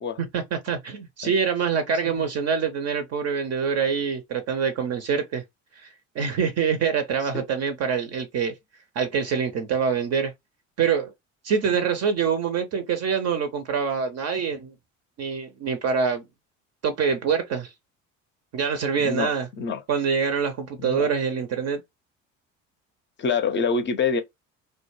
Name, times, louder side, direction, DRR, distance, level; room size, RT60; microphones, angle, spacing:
voice 1, 0.2-5.4 5.8-8.5 9.0-10.3 10.8-11.1 11.4-14.7 15.2-16.2 16.8-17.7 18.5-19.5 19.9-21.8, right 6 dB, 40° right, 0.5 m, -25 dB
voice 2, 19.0-19.8 20.8-21.1 23.2-24.2, left 5 dB, 30° left, 0.5 m, -26 dB
2.2 x 2.0 x 3.0 m
hypercardioid pair, 60°, 39 cm